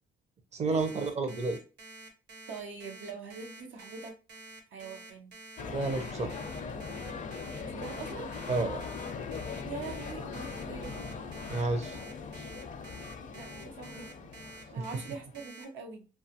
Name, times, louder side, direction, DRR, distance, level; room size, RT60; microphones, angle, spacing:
voice 1, 0.5-1.6 5.7-6.3 8.5-8.8 11.5-12.0, right 3 dB, 35° right, 6 dB, 0.5 m, -30 dB
Alarm, 0.8-15.6, right 2 dB, 60° right, 0.9 m, -49 dB
voice 2, 2.5-4.2 4.7-5.3 7.6-8.3 9.6-11.1 13.3-14.3 14.7-16.1, right 5 dB, 80° right, 3 dB, 0.6 m, -43 dB
sound 1, 5.6-15.4, left 5 dB, 40° left, 0.5 m, -40 dB
2.4 x 2.3 x 2.8 m, 0.34 s
cardioid pair, 90°, 20 cm